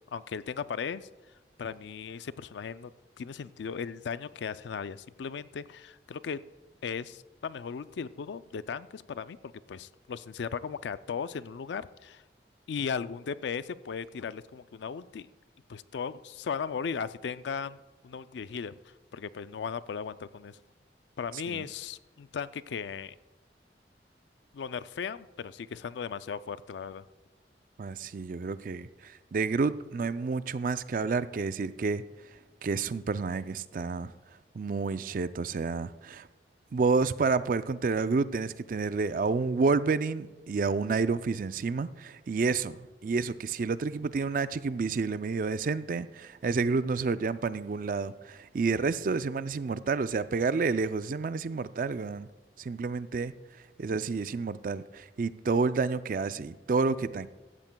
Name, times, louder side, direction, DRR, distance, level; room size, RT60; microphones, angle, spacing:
voice 1, 0.1-1.1 1.6-2.9 3.2-6.4 6.8-12.2 12.7-15.3 15.7-18.8 19.1-20.6 21.2-23.2 24.5-27.0, left 6 dB, 80° left, 0.4 m, -37 dB
voice 2, 27.8-32.0 32.6-34.1 34.6-36.3 36.7-52.3 52.6-53.3 53.8-57.3, right 4 dB, 50° right, 0.4 m, -29 dB
16.0 x 13.5 x 2.2 m
head